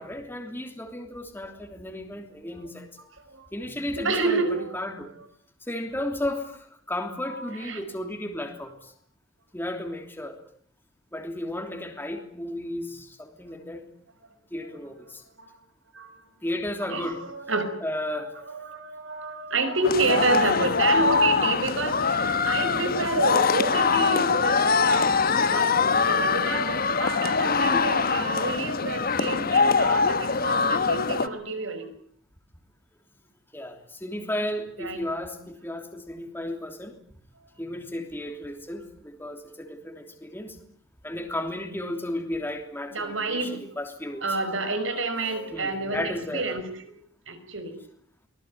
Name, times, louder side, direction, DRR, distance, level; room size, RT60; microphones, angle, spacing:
voice 1, 0.0-2.9 3.5-5.1 5.7-8.9 9.5-10.4 11.1-13.9 14.5-15.2 16.4-17.2 17.8-18.3 20.1-20.2 27.4-27.7 33.5-36.9 37.6-40.6 41.0-44.2 45.5-46.5, left 1 dB, 10° left, 4 dB, 3.1 m, -34 dB
voice 2, 3.9-4.7 7.2-7.4 7.6-7.8 14.7-14.8 15.4-15.5 15.9-16.1 16.8-17.7 18.5-31.9 34.8-35.0 42.9-43.6 44.2-47.0 47.3-47.7, right 3 dB, 75° right, 9 dB, 5.7 m, -29 dB
sound 1, 19.8-31.3, left 4 dB, 50° left, 1.2 m, -23 dB
24.5 x 19.5 x 9.3 m, 0.63 s
head